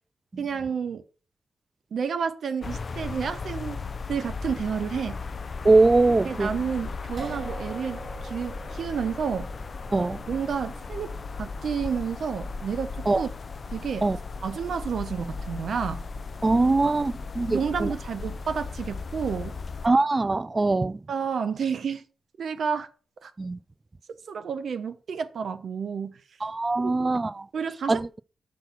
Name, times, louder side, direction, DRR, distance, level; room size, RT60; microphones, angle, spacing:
voice 1, 0.4-1.0 1.9-3.8 4.1-5.2 6.2-9.5 10.3-11.1 11.4-13.3 13.7-14.1 14.4-16.0 16.8-16.9 17.5-19.5 21.1-22.0 22.4-22.9 23.2-23.3 24.3-26.2 26.8-27.1 27.5-28.2, right 6 dB, 70° right, 0.9 m, -30 dB
sound 1, 2.6-19.9, left 4 dB, 45° left, 0.5 m, -36 dB
voice 2, 5.6-6.5 9.9-10.2 13.1-13.2 14.0-14.2 16.4-17.9 19.8-21.0 23.4-23.6 26.4-27.5 27.9-28.1, right 3 dB, 25° right, 0.3 m, -22 dB
sound 2, 7.2-19.5, right 3 dB, 40° right, 1.8 m, -47 dB
6.3 x 5.8 x 5.9 m
cardioid pair, 80°, 0 cm